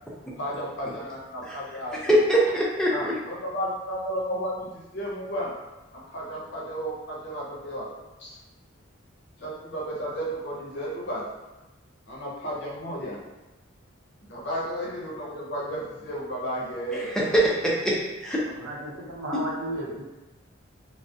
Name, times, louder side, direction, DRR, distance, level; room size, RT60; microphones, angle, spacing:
voice 1, 0.4-2.2 2.9-5.5 5.9-7.9 8.2-8.4 9.4-11.3 12.1-13.2 14.3-17.2, equal, 55° left, -4 dB, 0.6 m, -33 dB
voice 2, 2.1-3.2 17.2-18.4 19.3-19.4, right 1 dB, 5° left, -5 dB, 0.4 m, -23 dB
voice 3, 18.2-20.0, right 1 dB, 90° right, -3 dB, 0.6 m, -35 dB
2.3 x 2.0 x 2.6 m, 1.1 s
head